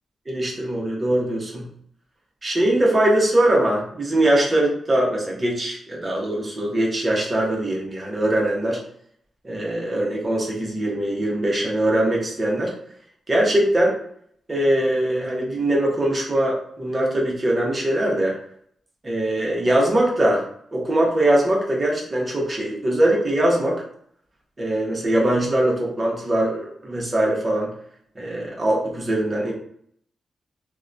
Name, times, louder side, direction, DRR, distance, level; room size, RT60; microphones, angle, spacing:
voice 1, 0.3-1.7 2.4-8.8 9.4-12.7 13.3-14.0 14.5-18.4 19.0-20.4 20.7-23.8 24.6-27.7 28.2-29.5, right 1 dB, 25° right, -2 dB, 0.8 m, -21 dB
2.7 x 2.1 x 2.4 m, 0.66 s
cardioid pair, 110°, 0 cm